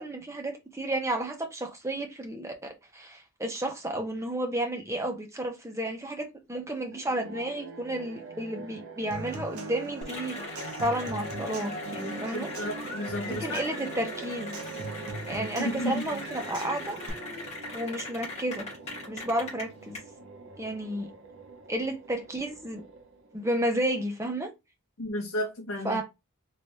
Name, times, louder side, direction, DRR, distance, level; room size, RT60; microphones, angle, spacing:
voice 1, 0.0-12.5 13.3-14.6 15.3-17.0 17.7-18.7 19.1-20.0 20.6-21.1 21.7-22.8 23.3-24.5 25.8-26.0, right 1 dB, 15° right, 0.7 m, -32 dB
sound 1, 6.9-23.5, right 2 dB, 60° right, 0.5 m, -45 dB
Human voice / Acoustic guitar / Percussion, 9.1-17.1, right 3 dB, 85° right, 0.9 m, -42 dB
Cheering / Applause, 10.0-20.0, left 2 dB, 30° left, 1.4 m, -39 dB
voice 2, 12.3-13.6 15.6-16.0 25.0-26.0, left 1 dB, 65° left, 0.7 m, -32 dB
3.2 x 3.2 x 2.7 m
head